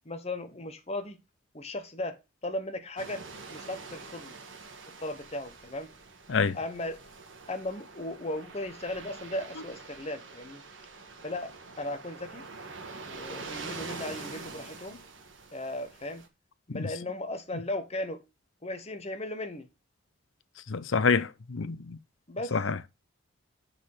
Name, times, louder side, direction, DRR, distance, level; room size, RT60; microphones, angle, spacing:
voice 1, 0.0-1.2 1.5-2.2 2.4-3.2 3.5-4.3 5.0-5.9 6.5-7.0 7.5-10.6 11.2-12.4 13.0-15.0 15.5-16.2 16.7-18.2 18.6-19.7 22.3-22.6, left 1 dB, 30° left, 1.2 m, -36 dB
sound 1, 3.0-16.3, right 4 dB, 65° right, 1.7 m, -45 dB
voice 2, 20.7-22.0 22.5-22.8, left 5 dB, 70° left, 0.6 m, -27 dB
6.6 x 5.9 x 4.9 m
head